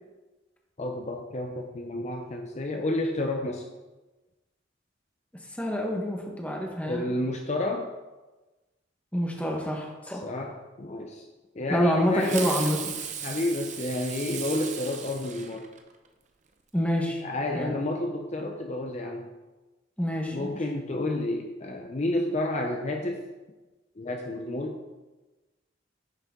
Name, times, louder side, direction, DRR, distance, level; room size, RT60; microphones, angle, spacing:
voice 1, 0.8-3.7 6.8-7.9 10.2-11.3 11.5-12.6 13.2-15.7 17.2-19.3 20.3-23.2 24.0-24.8, left 1 dB, 40° left, 2 dB, 0.7 m, -30 dB
voice 2, 5.6-7.1 9.1-10.3 11.7-12.9 16.7-17.2 17.5-17.7 20.0-20.6, equal, 10° left, 0 dB, 1.2 m, -27 dB
Fireworks, 12.2-16.1, right 7 dB, 40° right, 0.8 m, -36 dB
10.5 x 6.5 x 3.7 m, 1.2 s
head